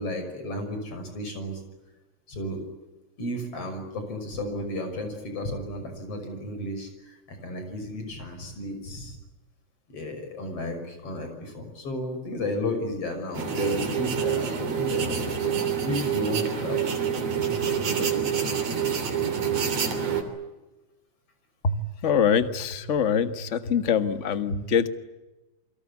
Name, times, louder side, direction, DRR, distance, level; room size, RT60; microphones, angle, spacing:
voice 1, 0.0-1.6 2.3-2.6 3.2-9.2 9.9-17.0 17.5-18.5, left 1 dB, 50° left, 6 dB, 6.9 m, -33 dB
sound 1, 13.3-20.2, right 7 dB, 55° right, 4.3 m, -27 dB
voice 2, 21.6-24.9, left 7 dB, 35° left, 10 dB, 1.2 m, -24 dB
28.5 x 24.0 x 8.4 m, 1.1 s
omnidirectional pair, 3.3 m